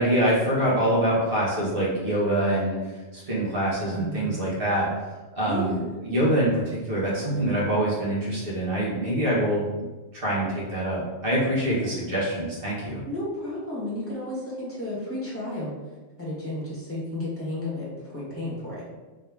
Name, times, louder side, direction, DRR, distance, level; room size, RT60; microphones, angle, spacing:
voice 1, 0.0-9.8 10.1-13.0, right 1 dB, 45° right, -6 dB, 1.5 m, -25 dB
voice 2, 3.9-4.3 5.5-6.0 11.7-12.1 13.0-15.7 16.2-17.9 18.1-18.8, left 1 dB, 10° left, -7 dB, 1.4 m, -32 dB
3.6 x 3.2 x 3.4 m, 1.2 s
omnidirectional pair, 1.3 m